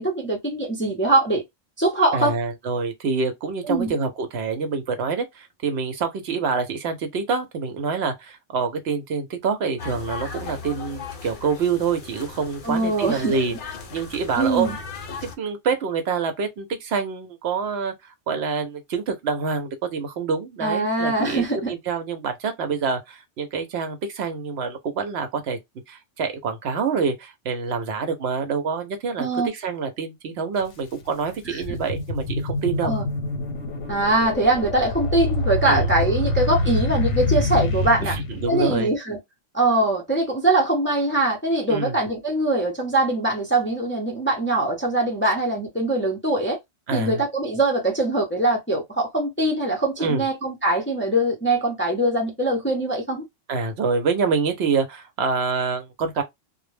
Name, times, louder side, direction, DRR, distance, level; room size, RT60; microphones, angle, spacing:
voice 1, 0.0-1.4 1.8-2.4 3.6-3.9 12.6-13.3 14.4-14.8 20.6-21.7 29.2-29.5 31.5-31.6 32.8-33.1 33.9-38.2 38.5-39.2 39.5-46.6 46.9-53.2, right 2 dB, 15° left, 0.5 m, -22 dB
voice 2, 2.1-13.5 13.9-14.7 15.2-25.6 25.9-32.9 35.7-35.9 38.0-38.9 41.7-41.9 45.2-45.3 46.9-47.2 50.0-50.2 53.5-56.2, right 5 dB, 70° right, 0.8 m, -26 dB
sound 1, 9.8-15.4, left 5 dB, 55° left, 0.7 m, -37 dB
sound 2, 30.6-30.7 31.2-38.9, left 1 dB, 80° left, 1.0 m, -26 dB
2.1 x 2.0 x 3.1 m
omnidirectional pair, 1.2 m